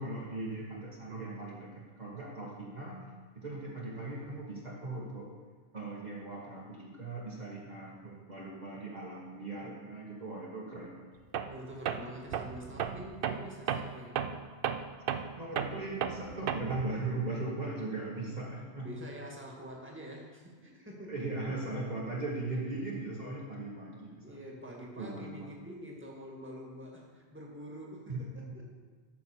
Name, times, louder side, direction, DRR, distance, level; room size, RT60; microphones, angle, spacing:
voice 1, 0.0-3.1 3.3-5.3 5.7-11.2 15.4-18.9 21.1-24.4 24.9-25.6 28.1-28.6, right 2 dB, 40° right, -5 dB, 1.4 m, -39 dB
Tools, 11.3-11.6 11.9-16.9, right 8 dB, 60° right, 0.7 m, -34 dB
voice 2, 11.4-14.4 18.8-21.1 21.5-21.9 24.2-28.8, equal, 10° right, -2 dB, 1.7 m, -46 dB
13.0 x 6.2 x 4.4 m, 1.5 s
omnidirectional pair, 1.2 m